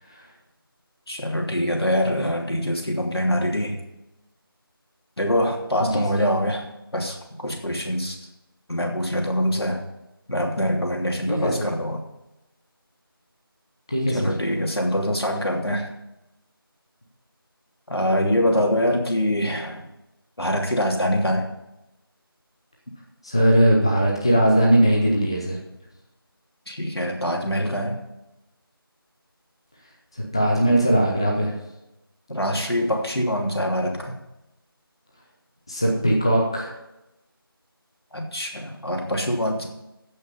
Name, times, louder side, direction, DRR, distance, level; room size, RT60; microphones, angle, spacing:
voice 1, 1.1-3.8 5.2-6.7 6.9-8.2 8.7-9.8 10.3-12.0 14.1-15.9 17.9-19.8 20.4-21.5 26.7-28.0 32.3-34.1 38.1-39.7, equal, 85° left, 1 dB, 2.8 m, -24 dB
voice 2, 11.3-11.7 13.9-14.3 23.2-25.6 30.3-31.5 35.7-36.7, right 1 dB, 10° left, -2 dB, 0.7 m, -20 dB
15.0 x 5.7 x 5.5 m, 0.92 s
figure-of-eight pair, 170°, 13 cm